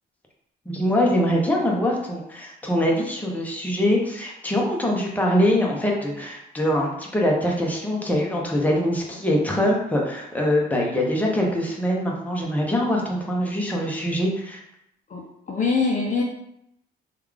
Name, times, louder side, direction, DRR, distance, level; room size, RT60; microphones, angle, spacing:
voice 1, 0.7-14.6, equal, 10° left, -2 dB, 0.8 m, -23 dB
voice 2, 15.1-16.2, left 4 dB, 40° left, -1 dB, 0.6 m, -24 dB
3.1 x 2.4 x 3.6 m, 0.78 s
cardioid pair, 90°, 20 cm